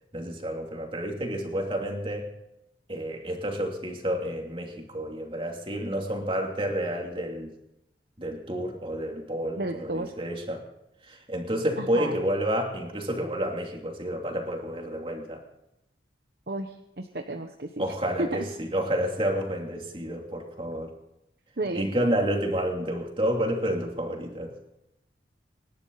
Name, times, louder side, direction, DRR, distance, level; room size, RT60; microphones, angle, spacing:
voice 1, 0.1-2.3 2.9-7.5 8.2-10.6 11.0-15.4 17.8-20.9 21.7-24.5, equal, 30° right, 1 dB, 2.8 m, -30 dB
voice 2, 9.6-10.3 11.8-12.2 16.5-17.9 18.2-18.5 21.6-21.9, right 2 dB, 60° right, 5 dB, 1.0 m, -32 dB
25.5 x 11.5 x 4.0 m, 0.85 s
head